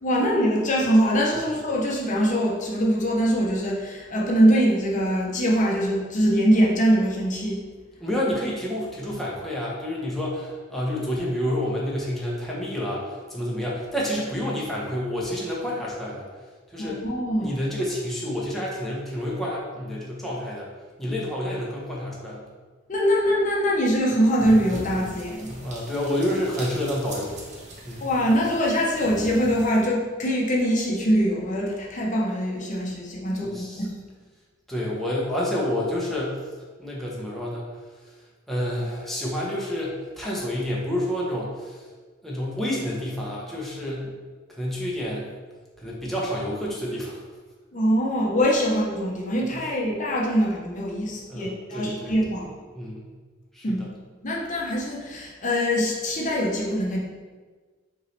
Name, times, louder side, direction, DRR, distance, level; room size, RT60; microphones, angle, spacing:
voice 1, 0.0-7.6 16.8-17.6 22.9-25.5 28.0-33.9 47.7-52.5 53.6-53.9 54.2-57.0, equal, 40° left, -3 dB, 0.7 m, -23 dB
voice 2, 8.0-16.3 16.7-17.0 17.4-20.7 21.0-22.4 25.4-27.3 27.8-28.1 33.4-33.9 34.7-36.4 36.8-37.7 38.5-41.9 42.2-44.1 44.5-45.3 45.8-47.2 49.5-49.6 51.3-52.1 52.7-53.1 53.5-53.9, left 1 dB, ahead, -5 dB, 0.7 m, -29 dB
sound 1, 24.3-29.8, right 1 dB, 35° right, 0.8 m, -40 dB
5.3 x 3.0 x 3.2 m, 1.4 s
head